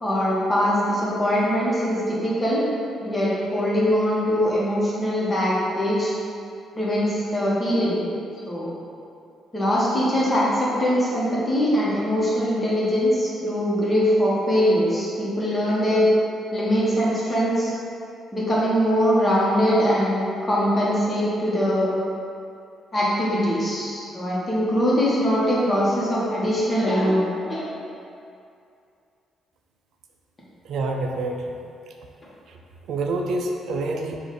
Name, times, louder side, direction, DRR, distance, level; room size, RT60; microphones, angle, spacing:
voice 1, 0.0-2.6 3.0-6.1 6.7-8.0 8.5-8.7 9.5-16.1 16.5-17.7 18.3-21.9 22.9-27.2 27.5-27.7, equal, 25° left, -7 dB, 1.3 m, -22 dB
voice 2, 30.7-31.5 32.9-34.2, right 2 dB, 70° right, 2 dB, 0.4 m, -27 dB
4.8 x 2.5 x 4.2 m, 2.5 s
cardioid pair, 90°, 0 cm